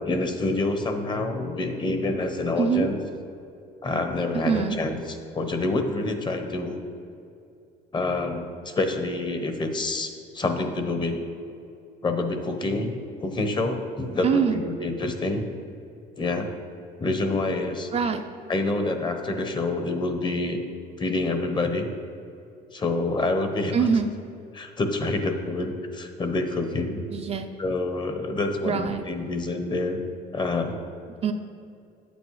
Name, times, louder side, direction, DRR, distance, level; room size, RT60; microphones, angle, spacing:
voice 1, 0.0-3.0 3.8-6.8 7.9-11.2 12.0-12.9 13.2-15.4 16.2-16.5 17.0-17.9 18.5-20.6 21.0-21.9 22.7-23.9 24.5-27.0 27.6-30.0 30.3-30.8, left 2 dB, 25° left, 6 dB, 0.8 m, -27 dB
voice 2, 2.6-2.9 4.5-4.8 14.2-14.6 17.9-18.2 23.7-24.1 27.1-27.5 28.6-29.0 31.2-31.3, right 6 dB, 40° right, 6 dB, 0.4 m, -23 dB
8.8 x 8.2 x 3.1 m, 2.5 s
cardioid pair, 110°, 17 cm